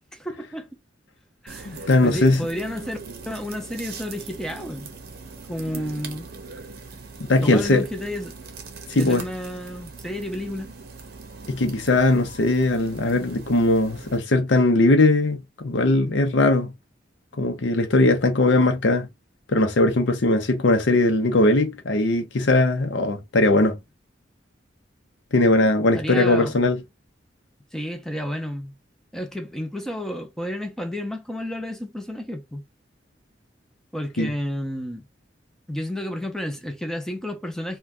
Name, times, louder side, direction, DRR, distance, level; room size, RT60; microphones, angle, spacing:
voice 1, 0.1-0.7 1.4-3.0 3.3-4.9 5.5-6.3 7.4-8.3 8.9-10.7 25.9-26.6 27.7-28.7 29.1-32.6 33.9-35.0 35.7-37.8, equal, 5° left, 0.6 m, -31 dB
sound 1, 1.5-14.2, right 4 dB, 55° right, 0.7 m, -40 dB
voice 2, 1.6-2.4 7.3-7.8 8.9-9.2 11.5-16.7 17.4-19.1 19.5-23.8 25.3-26.8 34.2-34.3, left 2 dB, 70° left, 0.6 m, -19 dB
2.6 x 2.2 x 3.4 m
head